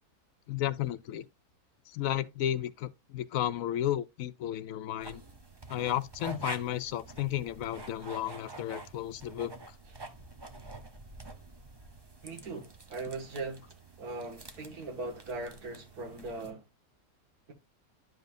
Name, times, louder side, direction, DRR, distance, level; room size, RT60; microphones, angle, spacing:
voice 1, 0.5-1.3 1.9-5.2 5.7-9.5, left 12 dB, 70° left, 0.9 m, -33 dB
sound 1, 5.0-16.5, right 2 dB, 20° right, 0.7 m, -47 dB
voice 2, 12.2-13.7 14.0-16.6, right 3 dB, 90° right, 2.3 m, -39 dB
11.5 x 5.2 x 2.5 m
omnidirectional pair, 1.6 m